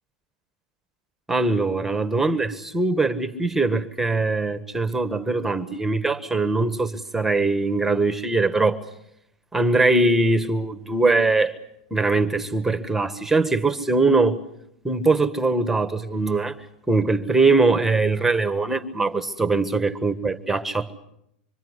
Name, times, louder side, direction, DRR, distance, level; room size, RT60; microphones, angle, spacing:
voice 1, 1.3-8.8 9.5-11.5 11.9-14.4 14.8-16.6 16.9-20.9, right 3 dB, 5° right, 1.5 m, -21 dB
26.0 x 23.5 x 8.2 m
hypercardioid pair, 115°, 5 cm